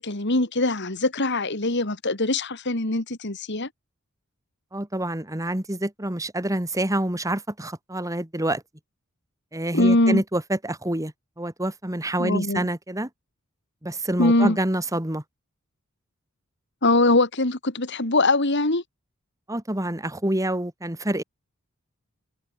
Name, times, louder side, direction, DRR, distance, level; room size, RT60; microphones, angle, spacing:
voice 1, 0.0-3.7 9.7-10.2 12.2-12.7 14.2-14.6 16.8-18.8, left 2 dB, 55° left, 2.9 m, -22 dB
voice 2, 4.7-8.6 9.5-13.1 13.8-15.2 19.5-21.2, right 1 dB, 15° right, 2.1 m, -27 dB
head